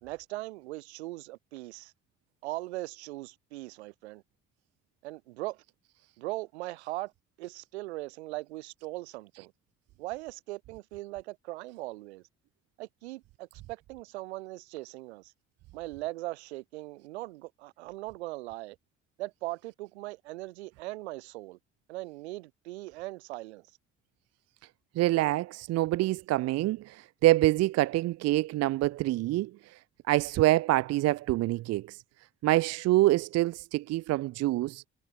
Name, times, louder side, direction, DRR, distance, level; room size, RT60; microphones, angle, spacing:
voice 1, 0.0-1.9 2.4-4.2 5.0-5.6 6.2-7.1 7.4-9.5 10.0-12.2 12.8-15.3 15.7-18.8 19.2-21.6 21.9-23.7, right 19 dB, 75° right, 2.3 m, -39 dB
voice 2, 25.0-29.5 30.1-32.0 32.4-34.9, right 17 dB, 50° right, 0.6 m, -26 dB
figure-of-eight pair, 45°, 33 cm